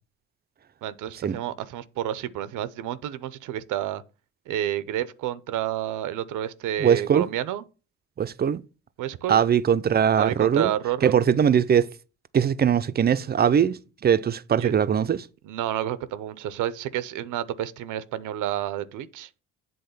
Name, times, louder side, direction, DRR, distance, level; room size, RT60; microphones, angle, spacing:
voice 1, 0.8-4.0 4.5-7.6 9.0-9.4 10.1-11.2 14.6-14.7 15.4-19.3, right 11 dB, 85° right, 0.7 m, -30 dB
voice 2, 6.8-7.3 8.2-8.6 9.3-10.7 11.0-11.9 12.3-15.2, right 8 dB, 30° right, 0.5 m, -21 dB
7.9 x 3.7 x 6.7 m
cardioid pair, 90°, 30 cm